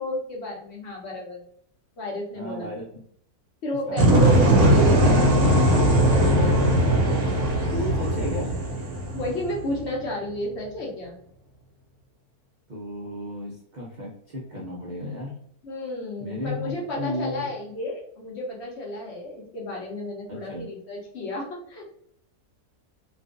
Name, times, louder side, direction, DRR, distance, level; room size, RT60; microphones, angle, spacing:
voice 1, 0.0-1.4 2.0-2.7 3.6-6.5 9.1-11.2 15.6-21.8, left 1 dB, 60° left, -2 dB, 0.8 m, -32 dB
voice 2, 2.3-3.0 3.9-4.7 7.7-8.6 12.7-15.3 16.2-17.5 20.3-20.6, left 1 dB, 85° right, -4 dB, 0.4 m, -34 dB
sound 1, 4.0-9.8, right 1 dB, 65° right, 0.8 m, -19 dB
2.5 x 2.3 x 2.4 m, 0.66 s
omnidirectional pair, 1.6 m